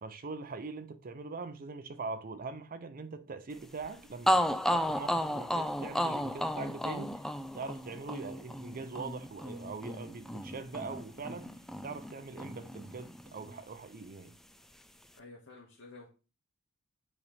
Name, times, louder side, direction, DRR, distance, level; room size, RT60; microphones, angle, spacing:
voice 1, 0.0-7.2 7.5-11.5 11.8-14.4, right 4 dB, 45° right, 0.5 m, -42 dB
sound 1, 3.8-3.9 4.3-12.1 12.4-13.5, equal, ahead, 0.4 m, -33 dB
voice 2, 15.1-16.1, left 3 dB, 65° left, 1.7 m, -51 dB
9.7 x 4.1 x 3.4 m
head